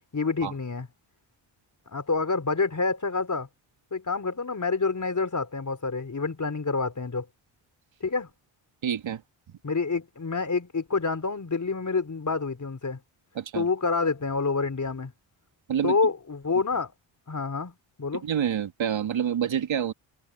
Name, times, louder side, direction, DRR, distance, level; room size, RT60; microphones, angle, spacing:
voice 1, 0.1-0.9 1.9-3.5 3.9-7.3 8.0-8.3 9.6-13.0 13.5-15.1 15.8-16.9 17.3-18.3, left 4 dB, 35° left, 4.3 m, -28 dB
voice 2, 8.8-9.2 13.4-13.7 15.7-15.9 18.2-19.9, right 9 dB, 65° right, 2.6 m, -27 dB
supercardioid pair, 50°, 50 cm